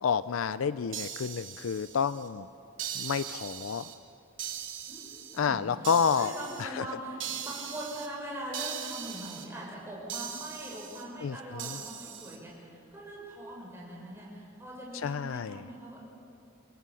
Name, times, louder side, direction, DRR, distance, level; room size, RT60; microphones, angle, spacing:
voice 1, 0.0-2.5 2.9-3.9 5.4-6.3 6.6-6.9 11.2-11.8 15.0-15.6, left 6 dB, 85° left, 15 dB, 0.4 m, -29 dB
sound 1, 0.9-2.3 2.8-3.9 4.4-5.4 5.8-6.6 7.2-8.1 8.5-9.4 10.1-11.0 11.6-12.4, right 9 dB, 70° right, 2.4 m, -40 dB
voice 2, 4.9-5.9 6.1-16.0, right 1 dB, 10° right, -5 dB, 6.4 m, -42 dB
29.0 x 18.5 x 7.0 m, 2.8 s
head